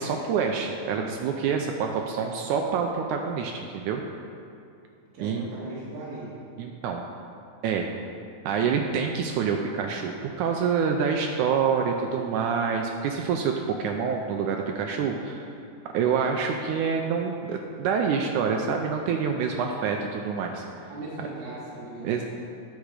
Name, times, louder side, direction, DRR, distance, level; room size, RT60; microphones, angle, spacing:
voice 1, 0.0-4.0 5.2-5.4 6.6-7.0 7.6-7.9 8.5-15.5 15.9-20.6 21.2-21.3 22.0-22.2, right 6 dB, 85° right, 2 dB, 1.8 m, -27 dB
voice 2, 5.1-6.4 20.9-22.2, right 2 dB, 60° right, -9 dB, 3.2 m, -38 dB
10.5 x 7.3 x 4.9 m, 2.5 s
omnidirectional pair, 4.1 m